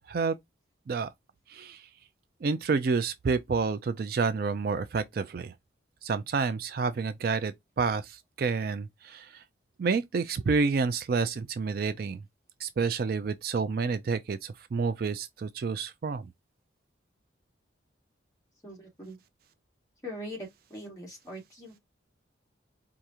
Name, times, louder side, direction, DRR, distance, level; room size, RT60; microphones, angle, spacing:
voice 1, 1.5-1.9 2.4-5.5 6.0-9.4 9.8-12.2 12.6-16.3, right 4 dB, 50° right, 0.3 m, -29 dB
voice 2, 18.6-19.2 20.0-21.8, equal, 15° left, 2.0 m, -42 dB
4.7 x 2.5 x 2.8 m
head